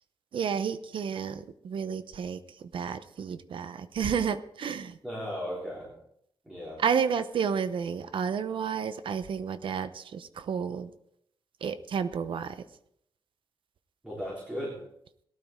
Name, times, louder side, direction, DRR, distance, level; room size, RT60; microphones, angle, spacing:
voice 1, 0.3-5.0 6.8-10.9 11.6-12.6, right 7 dB, 65° right, 12 dB, 0.8 m, -31 dB
voice 2, 5.0-5.9 6.4-6.8 14.0-14.8, equal, 10° right, -6 dB, 3.8 m, -36 dB
18.0 x 12.0 x 3.7 m, 0.73 s
wide cardioid pair, 175°, 9 cm